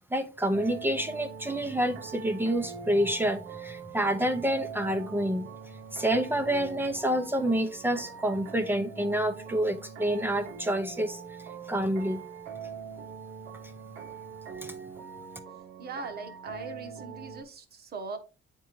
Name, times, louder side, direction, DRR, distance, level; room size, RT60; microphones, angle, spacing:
voice 1, 0.1-5.5 5.9-11.2 11.7-12.2 14.6-14.8, right 1 dB, 10° right, 0.6 m, -28 dB
sound 1, 0.5-17.4, right 6 dB, 80° right, 1.5 m, -43 dB
voice 2, 15.8-18.2, right 4 dB, 50° right, 1.1 m, -40 dB
9.1 x 3.7 x 3.0 m
cardioid pair, 155°, 21 cm